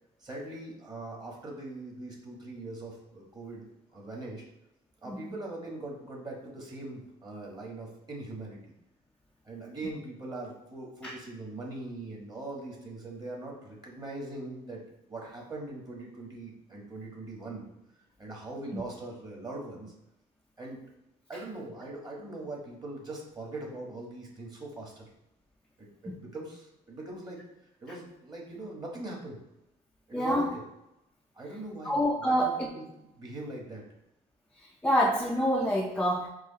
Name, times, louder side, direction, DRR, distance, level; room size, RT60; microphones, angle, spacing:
voice 1, 0.2-3.6 3.9-4.4 5.0-8.6 9.4-14.8 15.1-17.7 18.2-19.9 20.6-20.8 21.3-25.1 25.8-27.4 27.8-29.4 30.1-30.6 31.3-32.4 32.7-32.8 33.1-33.8, right 2 dB, 25° right, -2 dB, 1.4 m, -41 dB
voice 2, 30.1-30.5 31.8-32.7 34.8-36.3, equal, 5° left, -1 dB, 0.4 m, -27 dB
4.7 x 2.4 x 4.0 m, 0.88 s
cardioid pair, 110°, 17 cm